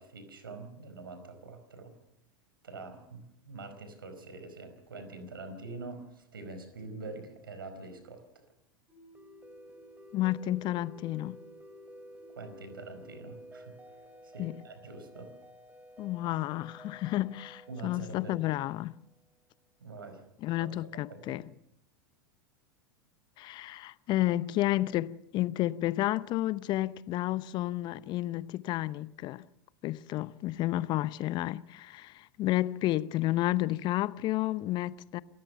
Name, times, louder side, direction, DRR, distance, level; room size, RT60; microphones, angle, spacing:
voice 1, 0.0-1.9 2.6-8.2 12.4-15.3 17.7-18.4 19.8-20.2 20.6-21.4, right 3 dB, 80° right, 4.9 m, -45 dB
sound 1, 8.9-19.2, equal, 10° right, 4.0 m, -52 dB
voice 2, 10.1-11.4 14.4-14.5 16.0-18.9 20.4-21.4 23.4-29.4 29.8-35.2, left 15 dB, 40° left, 0.8 m, -31 dB
28.0 x 14.5 x 6.9 m
figure-of-eight pair, 90°, 12 cm